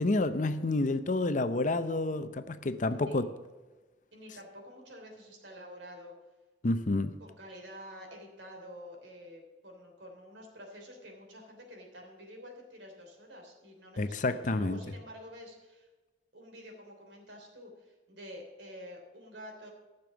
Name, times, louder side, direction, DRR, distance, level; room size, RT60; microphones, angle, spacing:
voice 1, 0.0-3.3 6.6-7.1 14.0-14.8, left 2 dB, 45° left, 0.6 m, -29 dB
voice 2, 2.7-3.2 4.1-6.1 7.2-15.9 16.3-19.7, equal, 85° right, 3.3 m, -49 dB
14.0 x 6.8 x 6.9 m
head